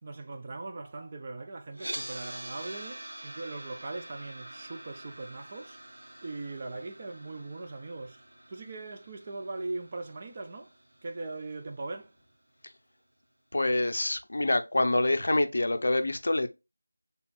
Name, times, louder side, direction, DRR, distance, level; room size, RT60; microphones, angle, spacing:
voice 1, 0.0-5.8 6.2-8.2 8.5-10.7 11.0-12.1, right 3 dB, 25° right, 0.4 m, -40 dB
sound 1, 1.7-11.8, right 1 dB, 60° right, 0.8 m, -45 dB
voice 2, 13.5-16.5, left 2 dB, 50° left, 0.5 m, -26 dB
5.7 x 3.5 x 2.4 m
figure-of-eight pair, 170°, 0 cm